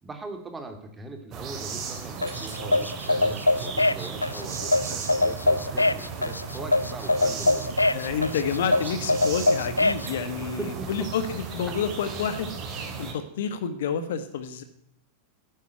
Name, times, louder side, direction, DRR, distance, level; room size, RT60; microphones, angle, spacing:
voice 1, 0.0-7.7 8.7-9.0 10.3-11.1 11.7-11.8, right 3 dB, 15° right, 5 dB, 2.4 m, -40 dB
sound 1, 1.3-13.1, right 5 dB, 35° right, 2.9 m, -36 dB
sound 2, 2.2-10.1, left 2 dB, 85° left, 0.5 m, -23 dB
voice 2, 7.9-12.5 13.0-14.6, left 7 dB, 60° left, 11 dB, 1.4 m, -29 dB
11.0 x 9.9 x 9.3 m, 0.71 s
figure-of-eight pair, 90°, 0 cm